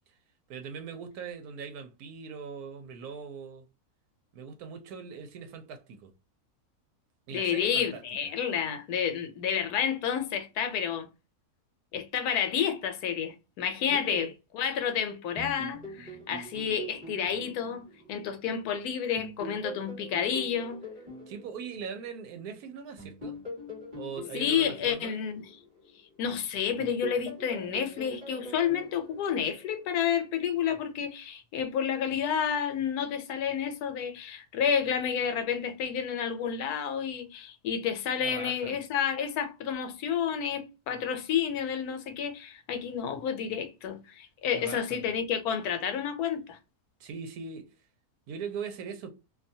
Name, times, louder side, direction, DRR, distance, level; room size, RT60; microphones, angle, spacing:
voice 1, 0.5-3.7 4.3-6.1 7.3-8.0 13.9-14.3 21.3-23.4 24.0-25.2 38.2-38.8 44.5-45.1 47.0-47.7 48.3-49.1, right 6 dB, 80° right, 1.1 m, -40 dB
voice 2, 7.3-11.1 11.9-14.3 14.5-20.8 24.3-25.5 26.2-46.6, left 8 dB, 80° left, 1.1 m, -30 dB
sound 1, 15.4-18.7 19.2-22.4 23.0-26.3 26.8-30.0, right 1 dB, 30° right, 1.1 m, -43 dB
2.7 x 2.3 x 2.6 m
omnidirectional pair, 1.6 m